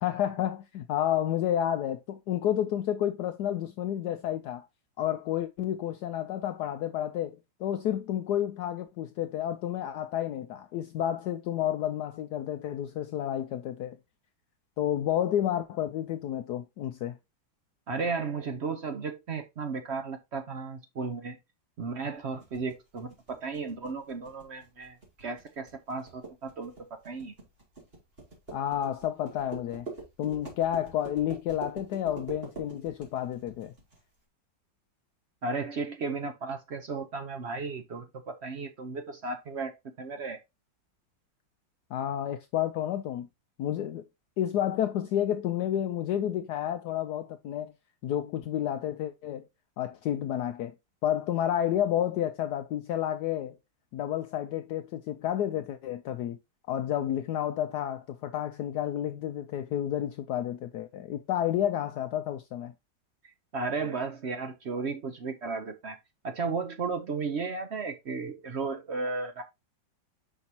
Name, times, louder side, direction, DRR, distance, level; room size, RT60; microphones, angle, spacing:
voice 1, 0.0-4.6 5.0-14.0 14.8-17.2 28.5-29.9 30.2-33.7 41.9-43.3 43.6-44.0 44.4-47.7 48.0-49.4 49.8-50.7 51.0-53.6 53.9-56.4 56.7-62.7, left 11 dB, 70° left, 1.0 m, -30 dB
voice 2, 17.9-21.4 21.8-26.7 27.0-27.3 35.4-38.0 38.4-39.7 40.0-40.4 63.2-66.0 66.2-69.4, right 4 dB, 60° right, 0.7 m, -34 dB
sound 1, 22.4-34.0, right 3 dB, 30° right, 2.6 m, -45 dB
6.0 x 5.5 x 2.8 m
omnidirectional pair, 2.0 m